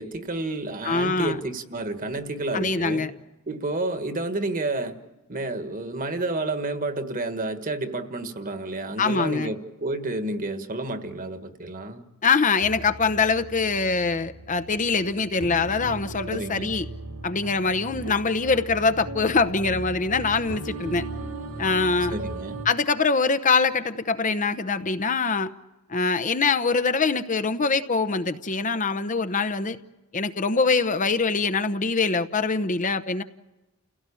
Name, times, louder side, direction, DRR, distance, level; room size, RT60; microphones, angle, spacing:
voice 1, 0.0-3.1 3.5-5.0 5.3-12.1 16.3-16.7 22.1-22.6, right 2 dB, 40° right, 1.6 m, -30 dB
voice 2, 0.8-1.4 2.5-3.1 9.0-9.5 12.2-16.9 17.2-21.0 21.6-22.2 22.7-25.5 25.9-29.8 30.1-33.2, left 4 dB, 35° left, 0.8 m, -23 dB
sound 1, 12.6-22.7, right 2 dB, 65° right, 2.2 m, -37 dB
30.0 x 17.0 x 8.5 m
head